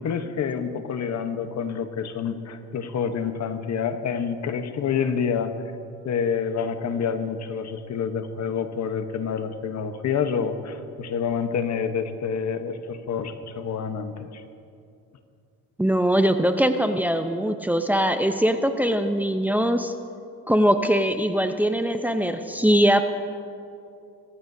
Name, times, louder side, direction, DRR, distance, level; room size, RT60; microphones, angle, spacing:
voice 1, 0.0-5.5 6.0-14.4, left 6 dB, 65° left, 8 dB, 1.2 m, -28 dB
voice 2, 15.8-19.9 20.5-23.0, equal, 5° right, 7 dB, 0.7 m, -21 dB
25.0 x 14.0 x 2.8 m, 2.5 s
cardioid pair, 90°, 30 cm